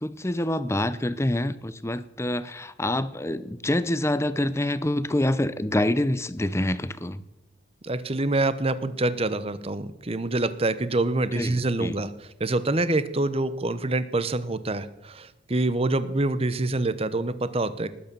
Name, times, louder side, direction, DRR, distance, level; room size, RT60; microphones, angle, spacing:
voice 1, 0.0-7.2 11.3-12.0, left 1 dB, 15° left, 14 dB, 0.7 m, -26 dB
voice 2, 7.8-17.9, right 2 dB, 30° right, 13 dB, 0.9 m, -26 dB
19.5 x 8.4 x 6.9 m, 0.94 s
head